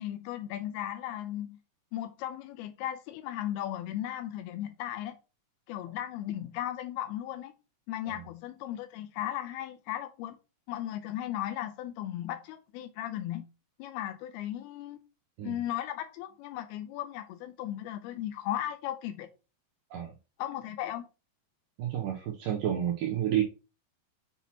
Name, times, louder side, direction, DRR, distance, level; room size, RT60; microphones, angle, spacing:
voice 1, 0.0-1.6 1.9-5.2 5.7-7.5 7.9-10.4 10.7-13.5 13.8-15.0 15.4-19.3 20.4-21.1, left 12 dB, 80° left, 2.5 m, -36 dB
voice 2, 21.8-23.4, right 11 dB, 80° right, 1.9 m, -30 dB
7.2 x 5.8 x 2.9 m
omnidirectional pair, 4.8 m